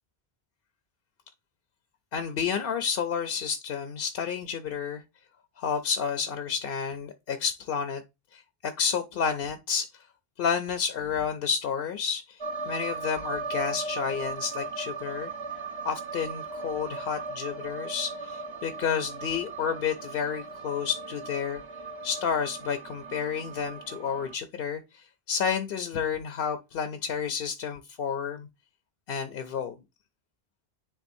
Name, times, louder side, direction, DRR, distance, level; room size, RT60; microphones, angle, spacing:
voice 1, 2.1-5.0 5.6-8.0 8.3-9.9 10.4-15.3 15.8-21.6 22.0-28.5 29.1-29.7, left 7 dB, 65° left, 0.8 m, -30 dB
sound 1, 12.4-24.3, right 3 dB, 35° right, 0.5 m, -37 dB
9.8 x 3.6 x 2.6 m
omnidirectional pair, 1.1 m